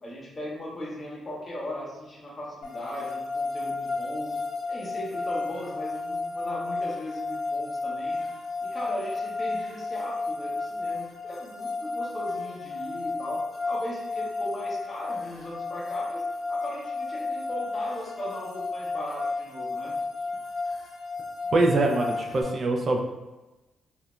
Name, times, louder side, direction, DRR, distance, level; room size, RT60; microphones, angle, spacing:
voice 1, 0.0-4.4 4.7-8.2 8.6-20.0 21.4-21.5, equal, 25° left, -5 dB, 0.6 m, -38 dB
sound 1, 2.6-22.4, left 3 dB, 70° left, 0.8 m, -32 dB
voice 2, 21.5-23.0, right 2 dB, 40° right, 2 dB, 0.3 m, -23 dB
2.4 x 2.0 x 2.9 m, 1.1 s
cardioid pair, 130°, 0 cm